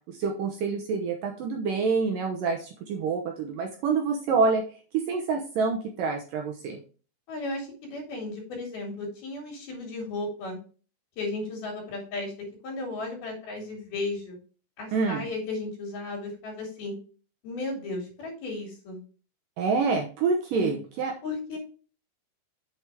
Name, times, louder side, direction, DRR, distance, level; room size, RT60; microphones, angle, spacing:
voice 1, 0.2-4.6 5.1-6.8 14.9-15.2 19.6-21.1, right 4 dB, 70° right, 2 dB, 2.2 m, -27 dB
voice 2, 7.3-10.6 11.2-14.4 14.8-17.0 17.4-19.0 20.5-20.8 21.2-21.6, left 2 dB, 65° left, 0 dB, 4.6 m, -35 dB
7.9 x 7.9 x 3.5 m, 0.37 s
omnidirectional pair, 4.8 m